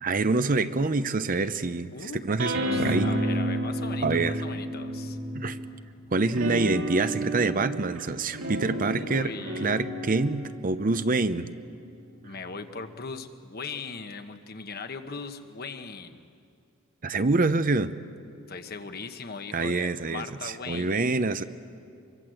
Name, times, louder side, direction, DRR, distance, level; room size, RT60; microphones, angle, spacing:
voice 1, 0.0-3.1 4.0-4.4 5.3-5.6 6.1-9.3 9.6-11.4 17.0-17.9 19.5-21.4, right 3 dB, 40° right, 12 dB, 0.7 m, -26 dB
voice 2, 1.9-2.2 2.7-5.2 8.6-9.7 12.2-16.2 18.5-20.9, left 4 dB, 45° left, 8 dB, 1.3 m, -39 dB
sound 1, 2.4-5.8 6.3-13.1, right 1 dB, 85° right, 2.8 m, -32 dB
25.0 x 23.0 x 7.8 m, 2.5 s
head